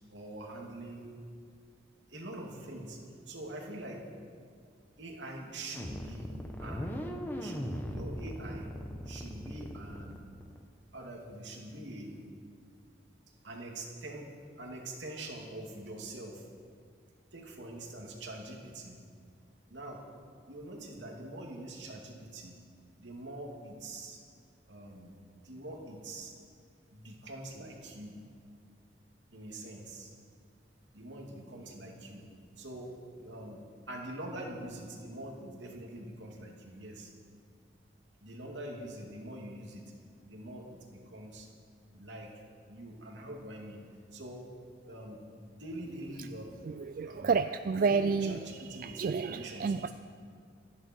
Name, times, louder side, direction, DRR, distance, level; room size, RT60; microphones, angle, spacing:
voice 1, 0.1-1.2 2.1-3.0 3.3-4.1 5.0-7.0 7.4-8.7 9.0-10.2 10.9-12.2 13.4-16.5 17.3-19.0 19.7-20.1 20.5-22.6 23.0-24.2 24.7-25.2 25.4-26.3 26.9-28.2 29.3-30.1 30.9-32.3 32.6-37.1 38.2-39.9 40.2-41.5 41.9-42.3 42.7-43.8 44.1-44.5 44.8-46.5 47.0-47.3 47.9-49.9, right 1 dB, 80° right, 0 dB, 2.8 m, -44 dB
sound 1, 5.7-10.6, equal, 10° left, 1.3 m, -39 dB
voice 2, 46.6-49.9, right 5 dB, 50° right, 10 dB, 0.4 m, -30 dB
27.5 x 10.5 x 4.7 m, 2.2 s
head